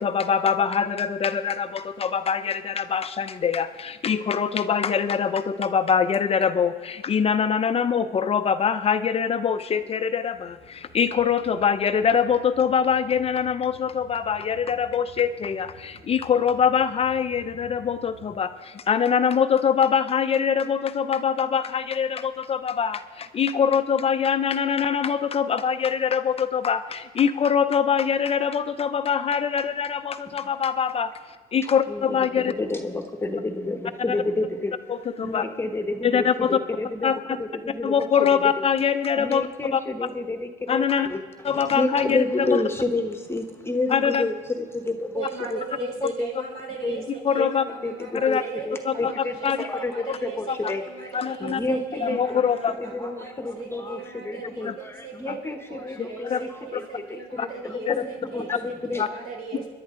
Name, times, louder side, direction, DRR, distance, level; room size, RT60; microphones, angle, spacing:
voice 1, 0.0-31.1 31.5-32.5 34.1-34.2 34.9-35.4 36.0-36.6 37.0-37.2 37.8-39.8 40.7-41.1 41.4-42.2 43.9-44.2 47.3-47.6 48.1-48.4 48.8-49.1 49.4-49.6 50.1-50.2 50.5-50.7 51.1-51.6 52.0-52.7 54.6-54.7 55.3-55.4 56.2-56.4 57.4-57.5 57.9-58.0 59.0-59.1, left 7 dB, 35° left, 10 dB, 0.6 m, -23 dB
sound 1, 10.0-18.3, right 2 dB, 50° right, 4.2 m, -51 dB
voice 2, 31.9-34.7 35.2-37.1 37.4-38.6 39.2-45.2 45.5-45.6 46.0-46.3 46.8-47.0 47.4-51.1 51.4-59.0 59.6-59.7, left 2 dB, 15° left, 6 dB, 1.1 m, -30 dB
voice 3, 45.1-59.7, right 5 dB, 65° right, -1 dB, 4.8 m, -38 dB
25.5 x 11.0 x 3.8 m, 1.5 s
cardioid pair, 110°, 17 cm